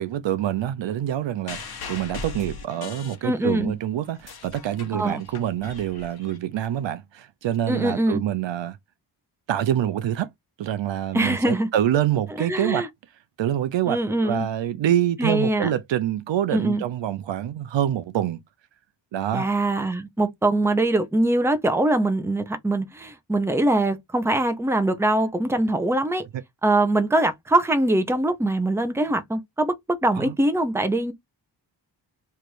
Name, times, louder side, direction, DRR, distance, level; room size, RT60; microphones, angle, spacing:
voice 1, 0.0-8.8 9.5-10.3 10.6-12.9 13.4-18.4 19.1-19.5 26.3-26.4 30.2-30.3, right 11 dB, 80° right, 0.6 m, -26 dB
sound 1, 1.5-3.7 4.0-6.7 7.5-7.6, left 4 dB, 55° left, 1.1 m, -39 dB
voice 2, 3.2-3.7 4.9-5.2 7.7-8.2 11.1-11.7 12.5-12.9 13.9-14.5 15.2-15.7 16.5-16.8 19.3-26.2 26.6-31.1, right 1 dB, 5° right, 0.6 m, -23 dB
3.3 x 2.5 x 4.4 m
wide cardioid pair, 110°, 44 cm